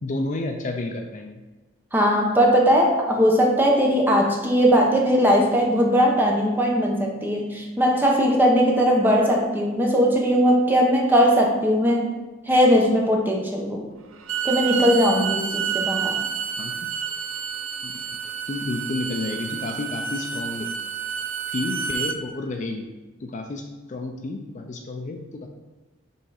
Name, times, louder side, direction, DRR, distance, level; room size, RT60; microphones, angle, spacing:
voice 1, 0.0-1.4 16.6-16.7 17.8-17.9 18.5-20.7 21.5-22.9 23.2-25.5, left 2 dB, 40° left, 4 dB, 0.4 m, -30 dB
voice 2, 1.9-12.1 12.5-13.8 14.4-16.2, equal, 10° right, 0 dB, 0.8 m, -19 dB
Bowed string instrument, 14.1-22.2, right 7 dB, 90° right, 0.5 m, -29 dB
5.4 x 3.7 x 4.8 m, 1.2 s
head